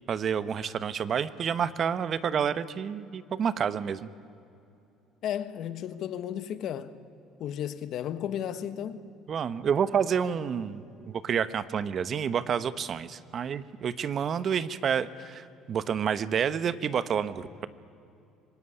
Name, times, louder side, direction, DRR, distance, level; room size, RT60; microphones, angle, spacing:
voice 1, 0.1-4.1 9.3-10.8 11.1-17.7, right 7 dB, 40° right, 1.0 m, -29 dB
voice 2, 5.2-6.9 7.4-9.0, left 10 dB, 60° left, 1.4 m, -34 dB
25.5 x 19.0 x 10.0 m
cardioid pair, 120°, 0 cm